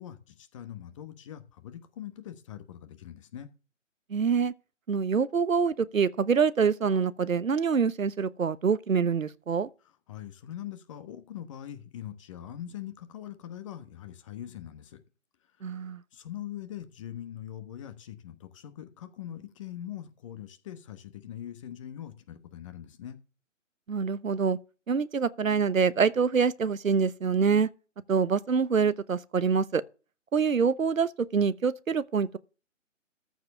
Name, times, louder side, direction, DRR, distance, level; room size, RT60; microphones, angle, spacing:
voice 1, 0.0-3.5 10.1-15.0 16.1-23.2, left 11 dB, 25° left, 1.2 m, -42 dB
voice 2, 4.1-4.5 4.9-9.7 15.6-16.0 23.9-24.6 24.9-27.7 28.1-29.8 30.3-32.4, right 6 dB, 85° right, 1.0 m, -25 dB
14.0 x 4.9 x 6.6 m
figure-of-eight pair, 150°, 39 cm